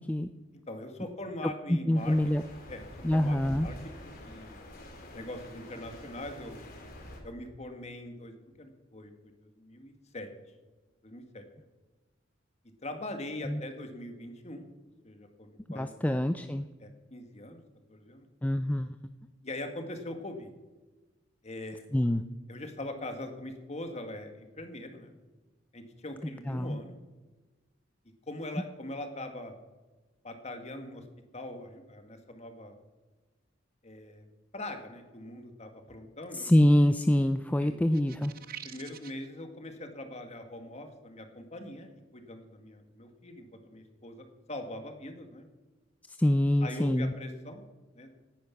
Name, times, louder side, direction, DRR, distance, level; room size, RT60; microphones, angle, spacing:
voice 1, 0.7-2.2 2.7-3.8 4.2-4.6 5.1-6.7 7.2-10.3 11.0-11.4 12.8-14.7 15.0-16.3 16.8-17.6 17.9-18.3 19.4-20.5 21.4-21.8 22.5-25.2 25.7-27.0 28.3-29.5 30.2-31.0 31.3-32.8 33.8-34.2 34.5-36.5 37.6-37.9 38.6-45.5 46.6-47.6 48.0-48.2, left 1 dB, 35° left, 6 dB, 1.9 m, -42 dB
voice 2, 1.7-2.4 3.0-3.7 13.5-13.6 15.7-16.7 18.4-19.0 21.9-22.2 26.5-26.8 36.3-38.3 46.2-47.1, left 1 dB, 10° left, 9 dB, 0.4 m, -25 dB
sound 1, 1.9-7.2, left 1 dB, 50° left, 3.4 m, -46 dB
sound 2, 37.9-39.3, right 10 dB, 50° right, 0.8 m, -46 dB
18.0 x 10.0 x 5.9 m, 1.2 s
head